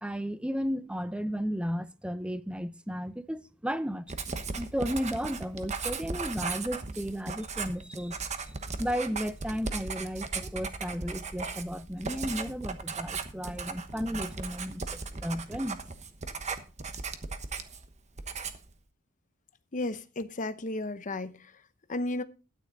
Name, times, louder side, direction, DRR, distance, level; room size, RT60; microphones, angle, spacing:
voice 1, 0.0-4.1 4.6-8.2 8.8-15.8 16.5-16.6, equal, 5° right, 0.6 m, -34 dB
Writing, 4.1-17.9 18.2-18.7, right 4 dB, 35° right, 1.2 m, -37 dB
voice 2, 19.7-21.3 21.9-22.2, left 2 dB, 40° left, 0.9 m, -33 dB
12.5 x 9.8 x 4.0 m
head